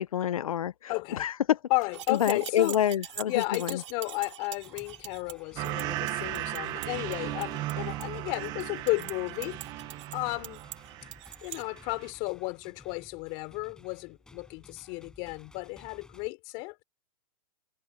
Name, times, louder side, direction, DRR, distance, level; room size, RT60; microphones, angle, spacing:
voice 1, 0.0-0.9 1.2-1.6 2.1-3.8, left 10 dB, 60° left, 0.9 m, -27 dB
voice 2, 0.9-1.3 1.7-2.8 3.2-9.6 10.1-10.6 11.4-16.8, left 27 dB, 25° left, 4.2 m, -33 dB
sound 1, 1.8-11.6, right 12 dB, 50° right, 5.4 m, -43 dB
sound 2, 4.5-16.3, left 2 dB, 5° left, 6.3 m, -56 dB
sound 3, 5.6-11.3 11.7-12.1, right 16 dB, 20° right, 1.4 m, -36 dB
hypercardioid pair, 165°, 20 cm